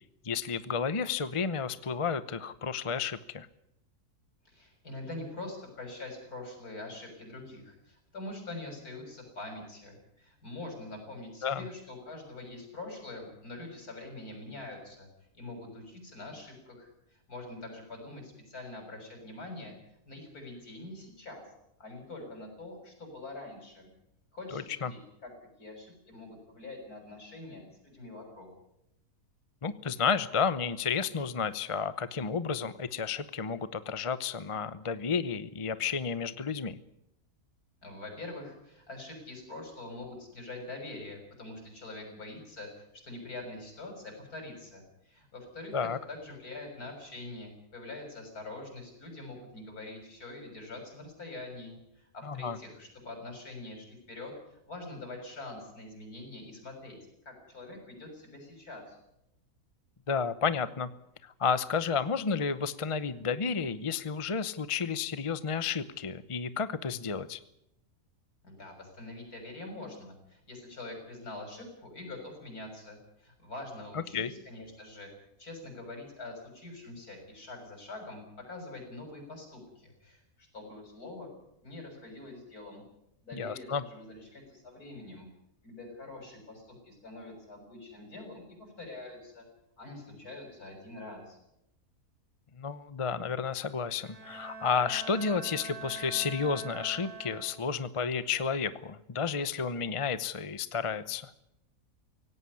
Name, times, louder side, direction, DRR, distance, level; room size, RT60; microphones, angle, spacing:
voice 1, 0.2-3.5 11.4-11.7 24.5-24.9 29.6-36.8 45.7-46.0 52.2-52.6 60.1-60.9 61.2-67.4 73.9-74.3 83.3-83.8 92.6-101.3, left 6 dB, 30° left, 14 dB, 0.7 m, -31 dB
voice 2, 4.5-15.1 15.3-16.9 17.3-19.7 20.1-21.4 21.8-23.9 24.3-25.3 25.6-28.5 37.8-42.7 43.0-45.8 46.1-57.0 57.3-59.0 68.4-75.1 75.4-81.3 81.6-82.8 83.2-85.3 85.6-89.4 89.8-91.4, left 2 dB, 75° left, 3 dB, 7.2 m, -44 dB
Bowed string instrument, 93.9-97.9, right 5 dB, 20° right, 8.1 m, -44 dB
17.5 x 17.0 x 9.7 m, 0.81 s
omnidirectional pair, 1.6 m